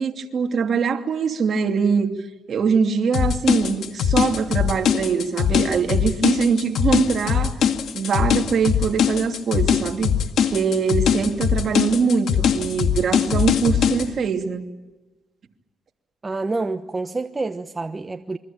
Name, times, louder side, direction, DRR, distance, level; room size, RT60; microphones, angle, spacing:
voice 1, 0.0-2.2 2.5-7.5 7.9-10.1 10.5-14.7, right 5 dB, 55° right, 2.8 m, -22 dB
sound 1, 3.1-14.1, left 8 dB, 70° left, 1.9 m, -21 dB
voice 2, 16.2-18.4, right 3 dB, 25° right, 1.0 m, -28 dB
27.5 x 24.0 x 8.9 m
cardioid pair, 90°, 0 cm